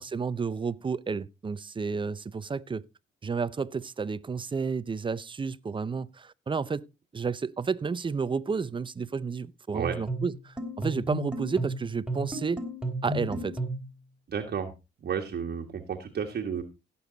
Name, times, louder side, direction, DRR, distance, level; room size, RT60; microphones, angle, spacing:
voice 1, 0.0-2.8 3.2-6.9 7.1-12.6 13.0-13.6, right 5 dB, 25° right, 0.6 m, -31 dB
sound 1, 10.1-13.9, right 1 dB, 5° right, 3.4 m, -33 dB
voice 2, 14.3-14.7 15.0-16.6, right 7 dB, 50° right, 1.6 m, -32 dB
16.5 x 7.1 x 3.9 m
cardioid pair, 90°, 20 cm